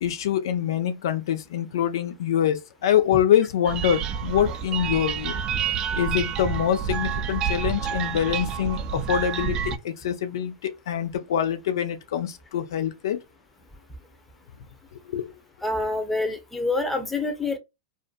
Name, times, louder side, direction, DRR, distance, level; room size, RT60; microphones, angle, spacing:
voice 1, 0.0-5.3 5.9-13.2 14.9-15.3, left 9 dB, 70° left, 0.4 m, -25 dB
sound 1, 3.6-9.8, right 7 dB, 35° right, 0.4 m, -28 dB
voice 2, 15.6-17.6, left 2 dB, 5° left, 0.7 m, -26 dB
2.5 x 2.2 x 2.5 m
hypercardioid pair, 100°, 2 cm